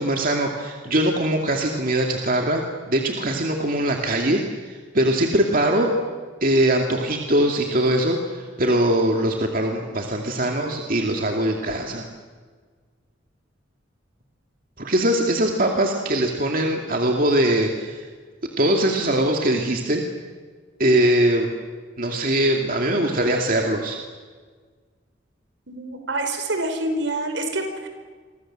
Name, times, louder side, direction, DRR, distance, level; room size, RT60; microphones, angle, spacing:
voice 1, 0.0-5.9 6.4-12.1 14.8-18.1 18.6-20.0 20.8-21.5 22.0-24.0, right 1 dB, 45° right, 2 dB, 2.5 m, -21 dB
voice 2, 25.7-27.9, right 2 dB, 70° right, 6 dB, 5.0 m, -27 dB
29.5 x 24.5 x 7.7 m, 1.5 s
head